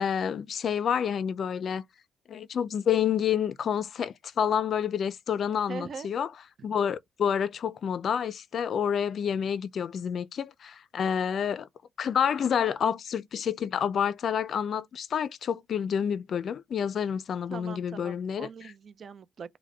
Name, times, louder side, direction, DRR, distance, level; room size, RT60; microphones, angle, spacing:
voice 1, 0.0-1.9 2.3-6.3 6.6-11.7 12.0-18.5, left 8 dB, 60° left, 0.4 m, -28 dB
voice 2, 5.7-6.1 17.5-19.6, right 6 dB, 50° right, 0.5 m, -41 dB
4.7 x 2.1 x 4.5 m
cardioid pair, 90°, 0 cm